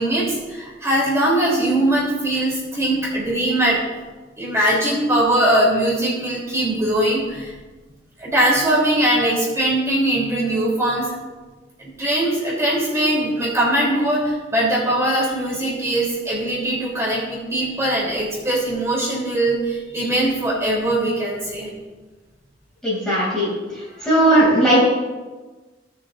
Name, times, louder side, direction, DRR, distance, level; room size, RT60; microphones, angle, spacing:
voice 1, 0.0-3.8 4.4-7.5 8.2-11.1 11.8-21.7, right 1 dB, 15° right, -6 dB, 3.2 m, -21 dB
voice 2, 22.8-23.5 24.0-24.9, right 1 dB, 5° left, -9 dB, 2.7 m, -16 dB
17.0 x 6.8 x 2.5 m, 1.3 s
head